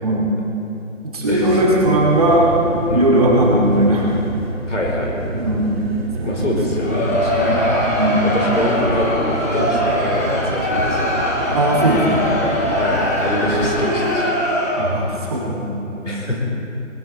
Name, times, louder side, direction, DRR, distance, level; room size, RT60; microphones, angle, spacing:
voice 1, 0.0-0.3 1.1-2.7 2.9-4.1 5.3-5.8 6.2-6.5 6.8-6.9 7.3-7.6 7.9-8.2 11.5-12.2 13.3-13.6 14.8-16.1, right 1 dB, 30° right, -4 dB, 2.5 m, -18 dB
voice 2, 1.3-1.6 2.9-3.1 4.7-5.1 6.2-7.6 7.9-11.2 12.7-14.3 16.0-16.5, left 1 dB, 65° left, -1 dB, 4.6 m, -25 dB
sound 1, 1.3-13.7, right 1 dB, 50° right, 1.9 m, -28 dB
Crowd, 6.6-15.1, left 1 dB, 10° left, 1.1 m, -21 dB
20.5 x 16.0 x 4.4 m, 2.8 s
figure-of-eight pair, 160°, 40 cm